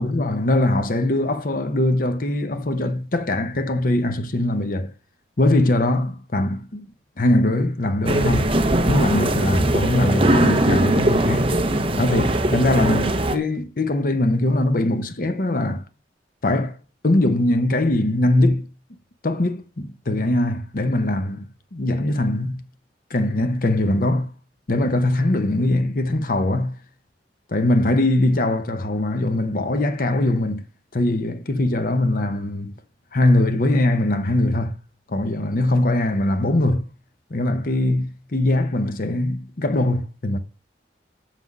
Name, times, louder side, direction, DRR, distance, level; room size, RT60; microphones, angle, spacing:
voice 1, 0.0-4.9 5.4-6.9 7.2-8.5 8.8-11.5 12.0-15.8 16.4-16.8 17.0-18.7 19.2-22.6 23.1-24.3 24.7-26.8 27.5-30.7 30.9-32.7 33.1-34.8 35.1-36.9 37.3-40.4, left 1 dB, 50° left, 0.8 m, -21 dB
sound 1, 8.1-13.4, right 1 dB, 30° right, 0.8 m, -20 dB
6.6 x 5.9 x 5.3 m
head